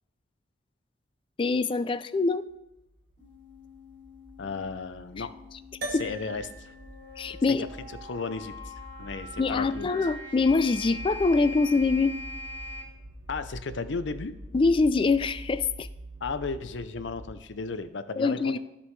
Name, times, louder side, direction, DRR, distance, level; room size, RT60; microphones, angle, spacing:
voice 1, 1.4-2.4 5.9-6.0 7.2-7.7 9.4-12.1 14.5-15.9 18.2-18.6, left 3 dB, 30° left, 14 dB, 0.3 m, -24 dB
sound 1, 2.6-17.9, right 1 dB, 80° right, 1.3 m, -45 dB
sound 2, 3.2-12.8, left 2 dB, 45° left, 3.1 m, -43 dB
voice 2, 4.4-5.3 5.9-6.7 7.5-7.6 8.0-8.7 9.0-9.9 13.3-14.4 16.2-18.6, left 4 dB, 75° left, 12 dB, 0.6 m, -34 dB
sound 3, 5.8-10.4, right 1 dB, 55° right, 1.7 m, -44 dB
14.0 x 5.4 x 3.2 m, 0.93 s
head